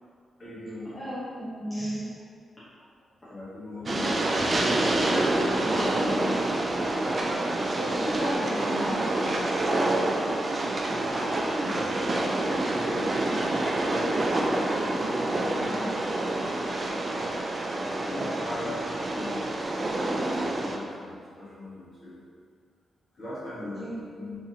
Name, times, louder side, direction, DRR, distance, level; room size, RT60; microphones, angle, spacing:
voice 1, 0.4-0.9 3.3-4.6 5.3-6.5 11.6-13.5 15.6-15.9 17.7-22.2 23.1-24.4, left 1 dB, 35° left, -10 dB, 1.4 m, -40 dB
voice 2, 0.9-2.1 7.4-9.9 15.4-16.3 23.8-23.9, equal, 10° left, -13 dB, 0.8 m, -35 dB
Train, 3.9-20.8, right 2 dB, 30° right, 0.3 m, -27 dB
3.7 x 2.8 x 2.7 m, 2.2 s
wide cardioid pair, 145°, 0 cm